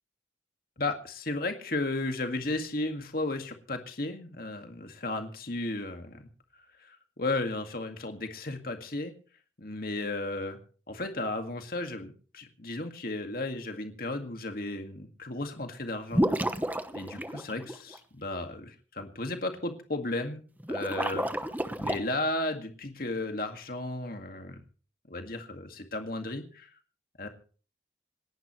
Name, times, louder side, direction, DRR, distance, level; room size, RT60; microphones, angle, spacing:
voice 1, 0.8-6.3 6.8-9.1 9.6-10.6 10.9-16.3 16.9-20.4 20.7-21.3 21.8-24.6 25.1-26.8 27.2-27.3, left 2 dB, 50° left, 5 dB, 2.0 m, -34 dB
sound 1, 16.1-18.0 20.6-22.0, right 1 dB, 10° right, 1.0 m, -30 dB
27.5 x 11.5 x 3.2 m, 0.41 s
head